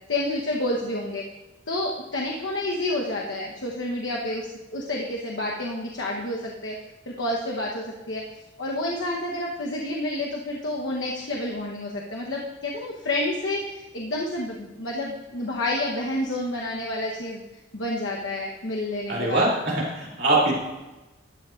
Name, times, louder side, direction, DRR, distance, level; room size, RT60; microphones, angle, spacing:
voice 1, 0.1-1.2 1.7-4.5 4.7-6.8 7.1-8.2 8.6-17.4 17.7-19.4, left 1 dB, 75° left, -2 dB, 1.1 m, -29 dB
voice 2, 19.1-20.6, right 2 dB, 55° right, -5 dB, 2.8 m, -23 dB
14.0 x 10.0 x 2.6 m, 1.1 s
head